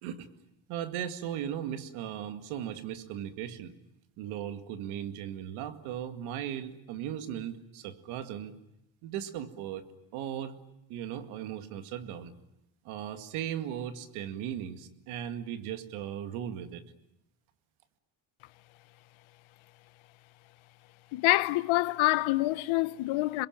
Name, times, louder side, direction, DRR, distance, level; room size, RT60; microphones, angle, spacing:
voice 1, 0.7-3.7 4.2-8.6 9.0-9.9 10.1-10.6 10.9-12.3 12.8-16.8, right 10 dB, 90° right, 2.2 m, -37 dB
voice 2, 21.1-23.5, left 19 dB, 80° left, 1.1 m, -26 dB
27.5 x 22.0 x 9.0 m
cardioid pair, 95°, 48 cm